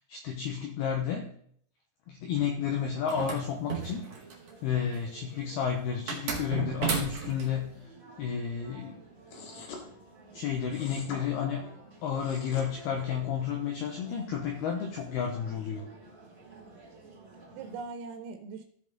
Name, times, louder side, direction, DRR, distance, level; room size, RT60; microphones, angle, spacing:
voice 1, 0.1-1.3 2.1-4.1 4.6-7.8 8.2-9.0 10.3-11.6 12.0-15.9, left 7 dB, 80° left, 1 dB, 2.3 m, -31 dB
sound 1, 2.3-17.8, right 2 dB, 40° right, 0.9 m, -53 dB
sound 2, 3.1-4.5 6.1-7.5, right 5 dB, 65° right, 1.5 m, -33 dB
sound 3, 9.3-9.8 10.7-11.2 12.1-12.7, left 4 dB, 60° left, 2.8 m, -43 dB
voice 2, 16.5-18.7, right 4 dB, 85° right, 6 dB, 3.3 m, -43 dB
15.5 x 5.3 x 3.8 m, 0.63 s
omnidirectional pair, 5.8 m